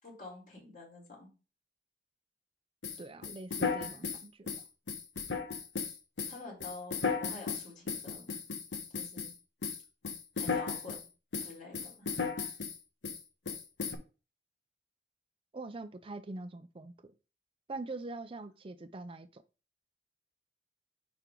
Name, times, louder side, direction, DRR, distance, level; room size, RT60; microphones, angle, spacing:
voice 1, 0.0-1.3 6.3-8.4 8.9-9.3 10.4-10.9 11.4-12.1, left 3 dB, 50° left, 3.7 m, -48 dB
sound 1, 2.8-9.3 9.6-11.0 11.3-12.8 13.0-13.2 13.4-13.9, left 5 dB, 90° left, 1.1 m, -35 dB
voice 2, 3.0-4.5 15.5-17.1 17.7-19.4, right 2 dB, 30° right, 0.5 m, -43 dB
9.2 x 3.4 x 3.8 m
head